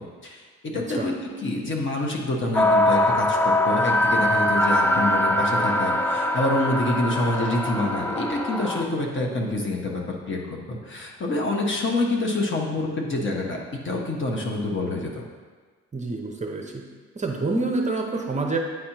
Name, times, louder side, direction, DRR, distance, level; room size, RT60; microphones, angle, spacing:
voice 1, 0.2-1.1 1.4-13.6 13.8-15.2, left 2 dB, 40° left, 0 dB, 1.1 m, -27 dB
voice 2, 0.7-1.1 15.9-16.8 17.2-18.6, right 3 dB, 25° right, 1 dB, 0.7 m, -27 dB
sound 1, 2.5-8.8, left 1 dB, 5° left, 0.4 m, -22 dB
9.2 x 4.2 x 3.0 m, 1.5 s
cardioid pair, 90°, 30 cm